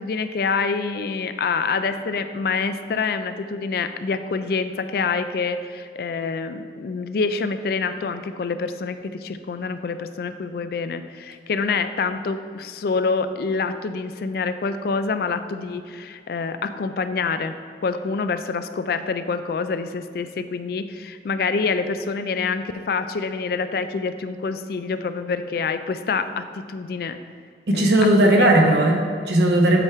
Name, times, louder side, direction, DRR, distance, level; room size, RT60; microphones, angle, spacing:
voice 1, 0.0-17.5 17.8-27.2 27.7-28.8, left 4 dB, 60° left, 10 dB, 0.3 m, -26 dB
voice 2, 27.7-29.8, right 1 dB, 70° right, 1 dB, 0.9 m, -17 dB
8.2 x 3.5 x 4.6 m, 2.1 s
head